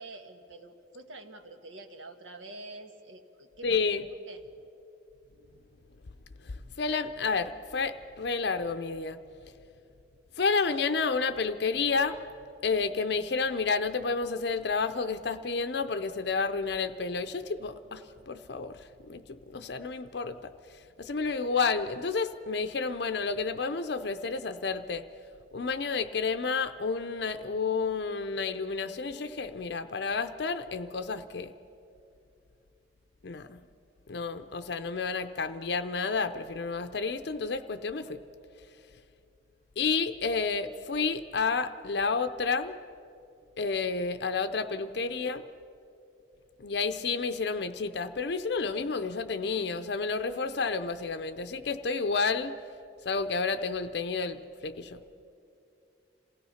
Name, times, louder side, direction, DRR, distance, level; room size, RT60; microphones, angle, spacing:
voice 1, 0.0-3.7 4.1-4.4, right 2 dB, 90° right, 6 dB, 1.5 m, -47 dB
voice 2, 3.6-4.0 6.4-9.2 10.4-12.2 12.6-20.5 21.0-25.0 25.5-31.5 33.2-33.6 34.1-38.2 39.8-42.8 43.6-45.4 46.6-52.6 53.0-55.0, left 4 dB, 60° left, 9 dB, 0.6 m, -30 dB
27.5 x 17.0 x 5.7 m, 2.7 s
head